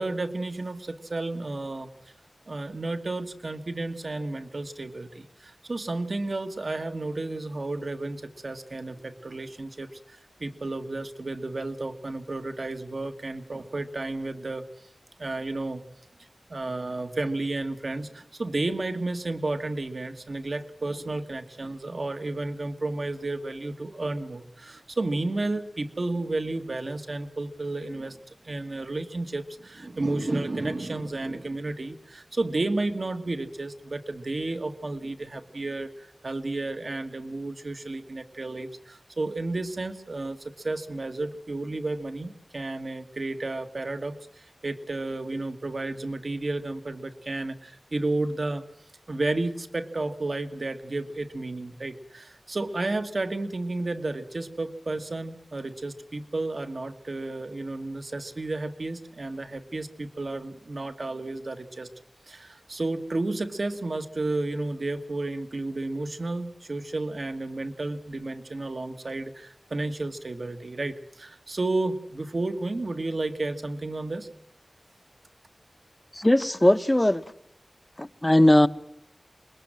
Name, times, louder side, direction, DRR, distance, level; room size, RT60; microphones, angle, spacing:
voice 1, 0.0-1.9 2.5-14.7 15.2-15.8 16.5-48.6 49.1-61.9 62.3-74.3, right 2 dB, 65° right, 1.5 m, -32 dB
voice 2, 76.1-77.2 78.0-78.7, left 1 dB, 20° left, 0.9 m, -19 dB
25.5 x 21.0 x 7.6 m
wide cardioid pair, 55°, 0 cm